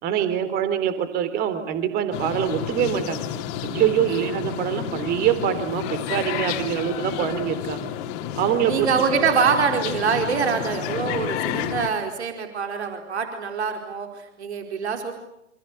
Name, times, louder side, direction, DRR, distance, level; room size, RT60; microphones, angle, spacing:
voice 1, 0.0-3.2 3.6-7.9 8.4-8.9, right 10 dB, 25° right, 11 dB, 3.8 m, -24 dB
sound 1, 2.1-11.9, left 10 dB, 35° left, 3.0 m, -30 dB
voice 2, 8.7-15.1, right 6 dB, 60° right, 4 dB, 4.7 m, -24 dB
29.5 x 28.0 x 6.9 m, 0.81 s
figure-of-eight pair, 125°, 36 cm